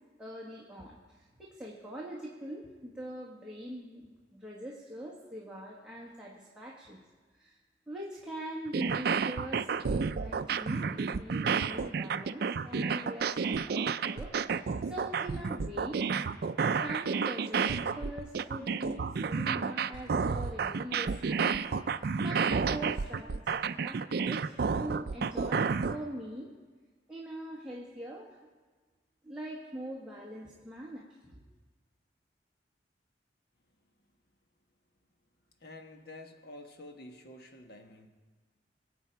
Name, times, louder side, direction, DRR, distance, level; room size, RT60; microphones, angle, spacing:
voice 1, 0.2-7.0 7.3-7.6 7.9-14.3 14.9-16.0 16.7-21.6 22.2-26.5 27.1-28.4 29.2-31.4, right 1 dB, 5° right, -5 dB, 1.5 m, -43 dB
sound 1, 8.7-26.0, right 5 dB, 55° right, 0.4 m, -31 dB
voice 2, 35.6-38.1, left 1 dB, 60° left, 4 dB, 1.3 m, -49 dB
23.5 x 8.3 x 4.6 m, 1.4 s
head